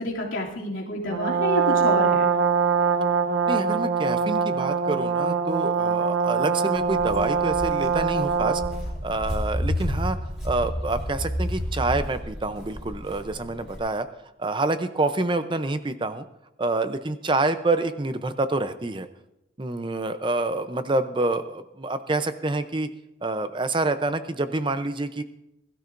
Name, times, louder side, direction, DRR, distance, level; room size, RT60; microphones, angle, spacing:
voice 1, 0.0-2.3, left 1 dB, 85° left, -4 dB, 2.7 m, -28 dB
Brass instrument, 1.1-8.8, right 5 dB, 65° right, 1.0 m, -23 dB
voice 2, 3.5-8.6 9.0-10.2 10.4-14.1 14.4-16.2 16.6-19.1 19.6-22.9 23.2-25.2, right 2 dB, 25° right, 10 dB, 0.6 m, -27 dB
Walk footsteps, 6.7-13.8, equal, 5° right, 5.7 m, -31 dB
21.0 x 12.5 x 2.6 m, 0.89 s
head